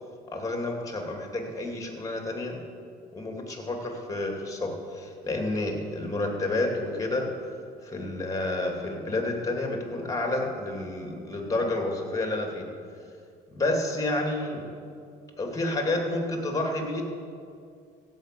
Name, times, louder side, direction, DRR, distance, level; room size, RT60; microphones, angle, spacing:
voice 1, 0.3-2.6 3.1-7.3 7.8-12.7 13.5-14.7 15.4-17.0, left 2 dB, 20° left, 2 dB, 2.6 m, -30 dB
15.5 x 5.7 x 8.3 m, 2.3 s
cardioid pair, 110°, 17 cm